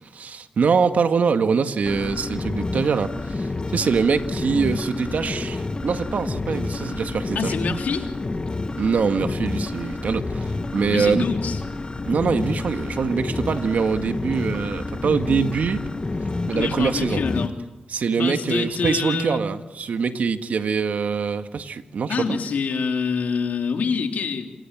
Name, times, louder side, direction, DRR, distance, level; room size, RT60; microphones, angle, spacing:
voice 1, 0.1-7.6 8.8-11.3 12.0-15.9 16.5-17.2 17.9-22.4, right 5 dB, 75° right, 8 dB, 1.8 m, -24 dB
sound 1, 1.9-17.5, left 3 dB, 35° left, 2.0 m, -29 dB
voice 2, 7.3-8.1 10.9-11.6 16.5-17.5 18.2-19.4 22.1-24.5, left 5 dB, 85° left, 4 dB, 3.3 m, -25 dB
28.0 x 27.0 x 7.5 m, 1.0 s
cardioid pair, 60°, 3 cm